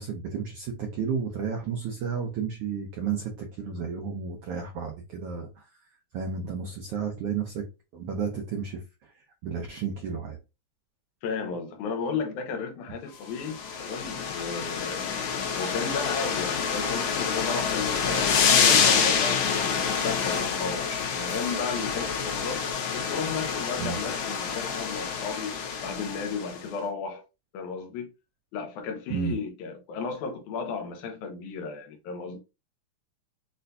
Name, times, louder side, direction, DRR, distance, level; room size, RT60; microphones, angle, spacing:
voice 1, 0.0-5.7 6.1-7.6 7.9-8.8 9.4-10.4 23.8-24.0 29.1-29.3, right 6 dB, 80° right, 1.3 m, -32 dB
voice 2, 11.2-15.0 15.5-18.3 18.6-22.7 22.9-27.2 27.5-28.1 28.5-32.4, left 5 dB, 85° left, 2.1 m, -34 dB
sound 1, 13.3-26.6, left 6 dB, 70° left, 1.8 m, -27 dB
6.3 x 2.2 x 2.6 m
omnidirectional pair, 3.5 m